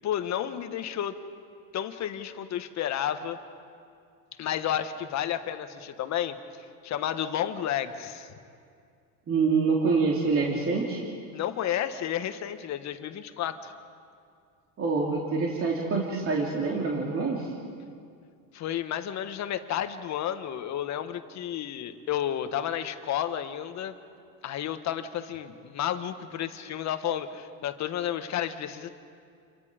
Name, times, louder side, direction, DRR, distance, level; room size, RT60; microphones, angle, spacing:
voice 1, 0.0-1.2 1.7-3.4 4.4-6.4 6.8-8.3 11.3-13.7 18.5-23.9 24.4-28.9, left 10 dB, 45° left, 9 dB, 1.5 m, -31 dB
voice 2, 9.3-11.0 14.8-17.5, right 4 dB, 35° right, -2 dB, 3.0 m, -26 dB
29.0 x 23.0 x 5.2 m, 2.3 s
supercardioid pair, 115°, 40 cm